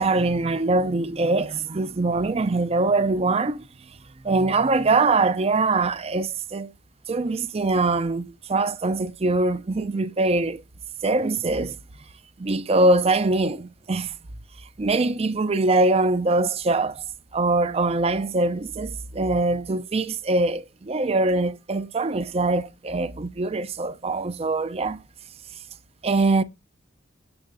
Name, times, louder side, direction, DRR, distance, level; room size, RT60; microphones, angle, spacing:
voice 1, 0.0-3.7 4.2-6.7 7.1-10.6 11.0-11.7 12.4-14.1 14.8-17.0 17.3-25.0 26.0-26.4, right 2 dB, 30° right, 0.5 m, -23 dB
16.5 x 6.3 x 2.6 m
head